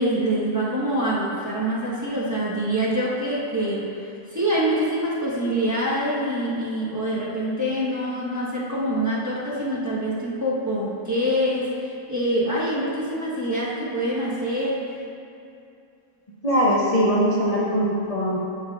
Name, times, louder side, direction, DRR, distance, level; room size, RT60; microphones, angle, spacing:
voice 1, 0.0-14.8, right 1 dB, 15° right, -9 dB, 1.1 m, -25 dB
voice 2, 16.4-18.5, equal, 35° left, -6 dB, 0.6 m, -21 dB
11.0 x 5.6 x 2.4 m, 2.6 s
omnidirectional pair, 1.7 m